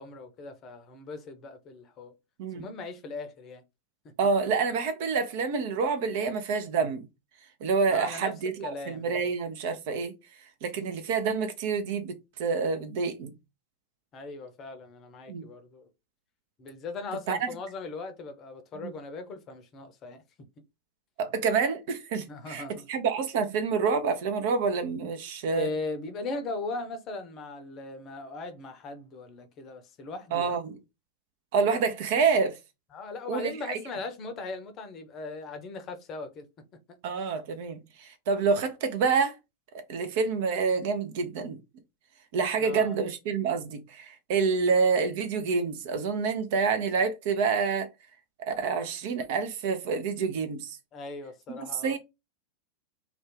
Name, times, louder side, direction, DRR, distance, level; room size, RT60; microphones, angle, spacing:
voice 1, 0.0-2.1 2.5-3.6 7.9-9.3 14.1-15.9 16.6-20.2 22.3-22.9 25.5-30.5 32.9-36.5 42.6-42.9 50.9-52.0, left 3 dB, 30° left, 0.6 m, -39 dB
voice 2, 4.2-7.1 7.6-10.1 10.6-13.3 15.3-15.5 17.3-17.5 18.8-18.9 21.2-22.6 22.9-25.7 30.3-30.8 31.5-32.5 33.3-33.8 37.0-39.4 39.9-41.6 42.3-47.9 48.5-50.8 51.6-52.0, right 5 dB, 50° right, 0.6 m, -27 dB
2.5 x 2.3 x 3.6 m
figure-of-eight pair, 90°, 0 cm